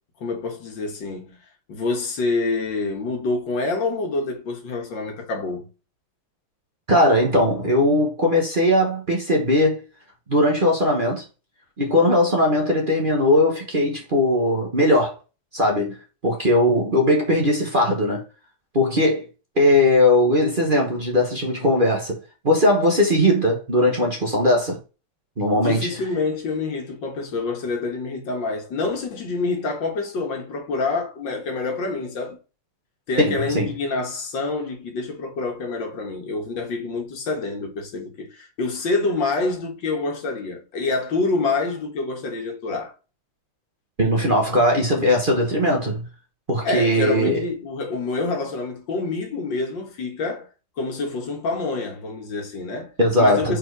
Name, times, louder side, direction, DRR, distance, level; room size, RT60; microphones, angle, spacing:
voice 1, 0.2-1.4 1.7-5.7 25.5-32.4 33.1-42.9 46.6-50.5 50.8-52.9 53.2-53.6, left 3 dB, 70° left, 2.1 m, -27 dB
voice 2, 6.9-9.8 10.3-11.2 11.8-15.1 15.5-16.0 16.2-18.2 18.7-19.2 19.6-22.2 22.4-24.8 25.4-25.9 33.2-33.7 44.0-46.0 46.5-47.4 53.0-53.6, left 1 dB, 30° right, 1.2 m, -19 dB
4.8 x 4.4 x 4.6 m
omnidirectional pair, 2.1 m